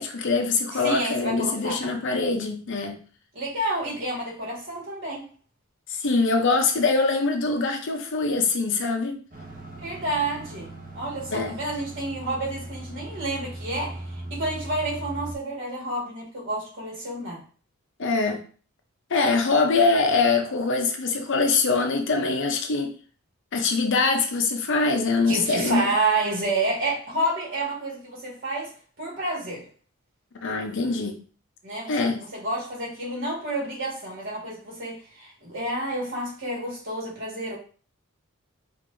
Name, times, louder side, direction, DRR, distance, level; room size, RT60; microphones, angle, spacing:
voice 1, 0.0-3.0 5.9-9.2 11.3-11.6 18.0-18.4 19.1-22.9 23.5-25.9 30.4-31.2 31.9-32.2, left 3 dB, 60° left, 0.6 m, -23 dB
voice 2, 0.7-1.9 3.3-5.3 9.8-10.7 10.9-17.4 25.3-28.7 29.0-29.7 31.6-37.6, right 2 dB, 55° right, 1.7 m, -29 dB
sound 1, 9.3-15.4, right 1 dB, 40° right, 0.9 m, -39 dB
4.5 x 2.5 x 2.6 m
head